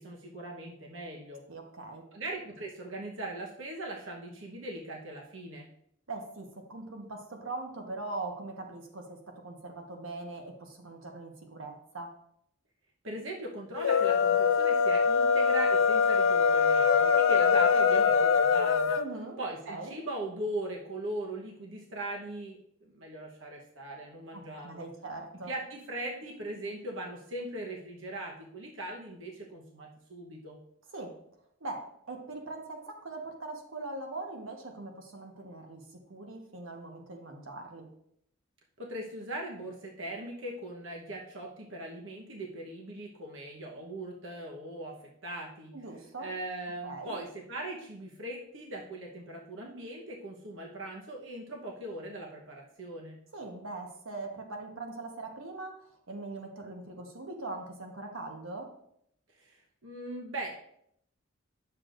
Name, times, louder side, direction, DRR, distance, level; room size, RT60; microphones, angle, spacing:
voice 1, 0.0-1.4 2.1-5.7 13.0-19.0 19.4-24.9 25.5-30.6 38.8-44.9 45.2-45.7 46.2-53.2 59.4-60.5, right 1 dB, 70° right, -1 dB, 1.1 m, -40 dB
voice 2, 1.5-2.1 6.1-12.2 19.0-19.4 19.7-20.0 24.3-25.5 30.9-31.2 31.6-37.9 45.7-46.3 46.8-47.2 53.3-58.7, right 2 dB, 85° right, 2 dB, 1.2 m, -41 dB
sound 1, 13.7-19.1, left 6 dB, 75° left, 0.4 m, -23 dB
9.6 x 6.8 x 2.6 m, 0.71 s
head